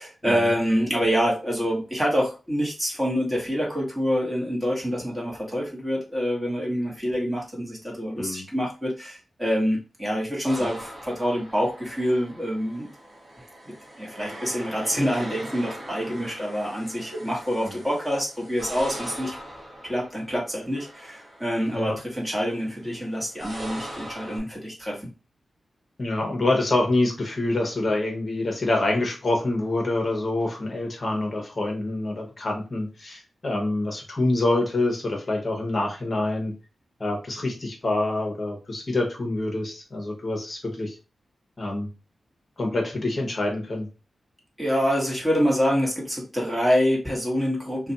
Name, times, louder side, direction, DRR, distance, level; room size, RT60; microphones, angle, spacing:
voice 1, 0.0-12.9 14.0-19.4 19.8-25.1 44.6-47.9, equal, 10° right, -2 dB, 1.2 m, -26 dB
sound 1, 10.5-24.4, right 1 dB, 30° right, 1.0 m, -41 dB
voice 2, 26.0-36.5 37.0-40.9 41.6-41.9 42.6-43.9, left 2 dB, 35° left, 1 dB, 0.8 m, -26 dB
2.4 x 2.2 x 3.9 m, 0.31 s
wide cardioid pair, 140°, 0 cm